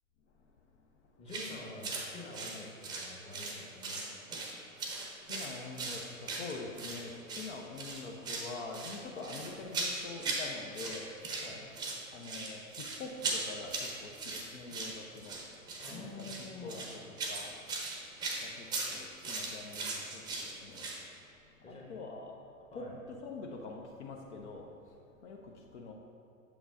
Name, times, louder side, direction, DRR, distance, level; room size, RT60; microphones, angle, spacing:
voice 1, 1.2-4.2 11.4-11.6 15.8-16.9 21.6-21.9 22.1-22.3 22.7-23.0, left 2 dB, 15° left, -2 dB, 1.0 m, -47 dB
sound 1, 1.3-1.5 1.8-2.1 2.3-3.6 3.8-4.5 4.8-7.0 7.3-7.5 7.8-8.5 8.7-10.5 10.7-11.5 11.7-21.0, right 3 dB, 10° right, 0.7 m, -38 dB
voice 2, 5.2-7.1 7.4-11.1 12.1-15.4 15.9-16.3 16.6-17.0 17.3-17.5 18.4-20.8 21.7-22.3 22.7-22.8 23.2-24.7 25.2-25.4 25.7-25.9, left 3 dB, 55° left, 1 dB, 0.7 m, -45 dB
8.0 x 7.0 x 2.5 m, 2.9 s
figure-of-eight pair, 105°, 42 cm